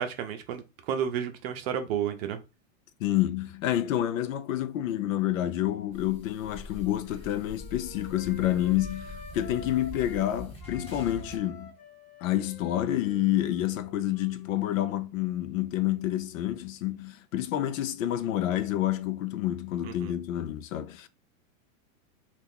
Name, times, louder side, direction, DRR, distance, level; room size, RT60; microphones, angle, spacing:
voice 1, 0.0-2.4 19.8-20.1, right 8 dB, 45° right, 0.6 m, -32 dB
voice 2, 3.0-11.7 12.2-21.1, left 13 dB, 80° left, 0.6 m, -28 dB
Wind instrument woodwind instrument, 5.7-10.2 10.6-15.1, left 2 dB, 30° left, 1.1 m, -49 dB
sound 1, 5.9-11.4, left 2 dB, 15° left, 0.8 m, -43 dB
2.9 x 2.5 x 3.7 m
supercardioid pair, 160°, 39 cm